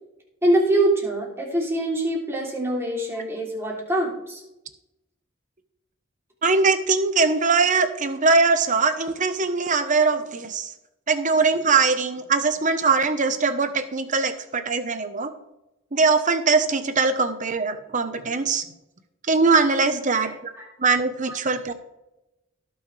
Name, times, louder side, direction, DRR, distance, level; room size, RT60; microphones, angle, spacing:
voice 1, 0.4-4.4 20.1-20.7 21.3-21.4, right 1 dB, 10° right, -3 dB, 3.2 m, -24 dB
voice 2, 6.4-10.7 11.1-15.3 15.9-18.6 19.3-20.5 20.8-21.7, right 4 dB, 40° right, 10 dB, 1.0 m, -21 dB
17.0 x 6.3 x 3.3 m, 0.91 s
head